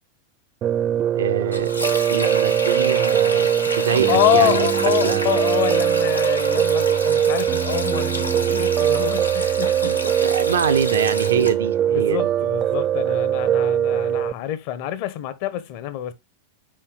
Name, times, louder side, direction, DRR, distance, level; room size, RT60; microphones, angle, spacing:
Piano, 0.6-14.3, right 10 dB, 30° right, 0.4 m, -21 dB
voice 1, 1.1-1.7 2.1-3.5 3.8-4.6 5.0-5.3 9.8-12.2, right 8 dB, 65° right, 0.9 m, -24 dB
Sink (filling or washing), 1.5-11.5, left 2 dB, 90° left, 1.2 m, -30 dB
voice 2, 3.7-10.0 11.9-16.1, left 12 dB, 45° left, 1.1 m, -26 dB
5.6 x 5.0 x 5.0 m
figure-of-eight pair, 90°, 0 cm